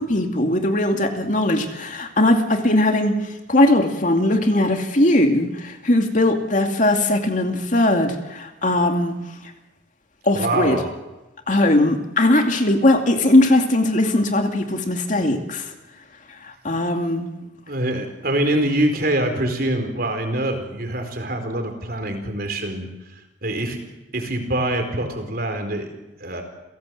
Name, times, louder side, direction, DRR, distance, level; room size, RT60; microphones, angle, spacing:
voice 1, 0.1-3.2 3.5-9.1 10.3-10.8 11.5-15.7 16.4-17.2, left 1 dB, 45° left, 4 dB, 2.6 m, -19 dB
voice 2, 10.4-10.9 17.7-22.9 23.4-23.8 24.1-25.9 26.2-26.4, right 1 dB, 55° right, 6 dB, 4.5 m, -24 dB
29.5 x 17.5 x 7.8 m, 1.1 s
head